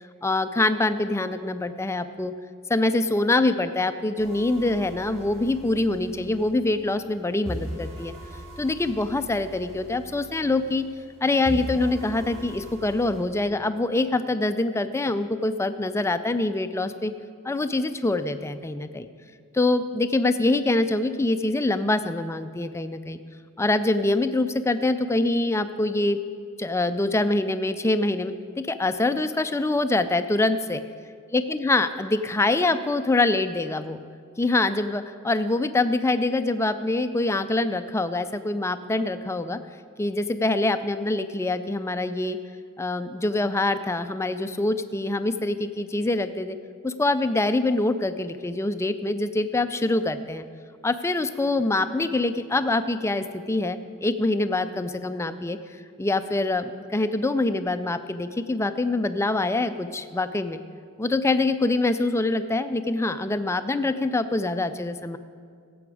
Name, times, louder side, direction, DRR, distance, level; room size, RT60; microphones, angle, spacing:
voice 1, 0.2-2.3 2.7-8.1 8.6-10.9 11.2-17.1 17.4-19.1 19.5-23.2 23.6-26.2 26.6-30.8 31.3-34.0 34.4-39.6 40.0-42.4 42.8-46.6 46.8-50.5 50.8-60.6 61.0-65.2, left 2 dB, 10° left, 11 dB, 0.4 m, -25 dB
sound 1, 4.2-7.2 7.4-11.1 11.4-13.2, equal, 30° right, 3.6 m, -40 dB
16.0 x 7.9 x 4.8 m, 2.2 s
head